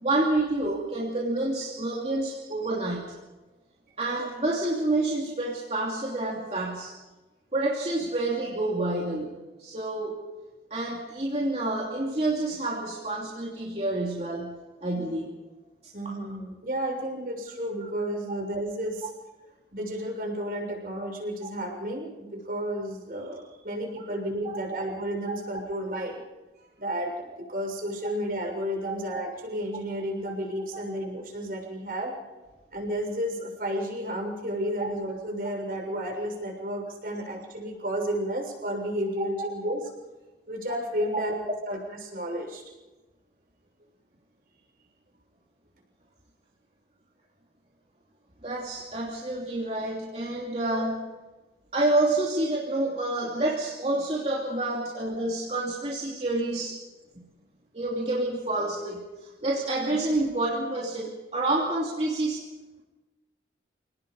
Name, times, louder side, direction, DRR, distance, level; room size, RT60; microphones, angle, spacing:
voice 1, 0.0-3.1 4.0-6.9 7.5-10.2 10.7-15.3 16.0-16.1 21.4-21.5 28.8-28.9 30.7-30.8 34.8-34.9 41.1-41.2 48.4-51.1 51.7-56.8 57.7-62.4, right 2 dB, 35° right, -3 dB, 2.8 m, -28 dB
voice 2, 15.9-19.1 19.7-26.2 26.8-32.1 32.7-39.8 40.5-41.4 41.7-42.6, equal, 55° right, 1 dB, 6.8 m, -32 dB
28.5 x 18.5 x 5.4 m, 1.1 s
head